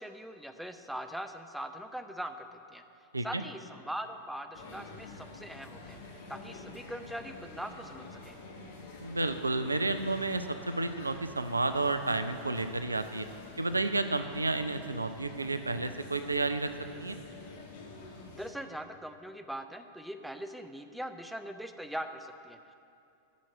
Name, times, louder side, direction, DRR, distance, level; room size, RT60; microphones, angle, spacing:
voice 1, 0.0-2.8 3.2-6.0 6.3-8.4 18.3-22.7, equal, ahead, 7 dB, 0.5 m, -41 dB
sound 1, 4.5-18.5, left 3 dB, 55° left, 1.2 m, -48 dB
voice 2, 9.0-13.3 13.6-16.7 17.0-17.2, right 2 dB, 80° right, 10 dB, 0.4 m, -31 dB
8.2 x 6.2 x 7.5 m, 2.6 s
figure-of-eight pair, 90°, 0 cm